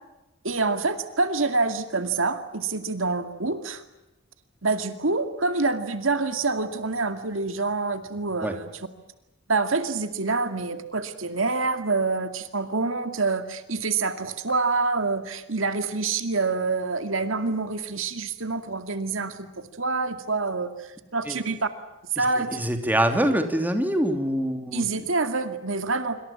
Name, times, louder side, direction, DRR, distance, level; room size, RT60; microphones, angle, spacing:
voice 1, 0.4-3.8 4.6-8.9 9.5-21.7 22.2-22.6 24.7-26.2, right 3 dB, 70° right, 8 dB, 2.3 m, -26 dB
voice 2, 22.5-24.9, right 1 dB, 10° right, 6 dB, 3.1 m, -24 dB
26.5 x 25.5 x 7.3 m, 1.0 s
head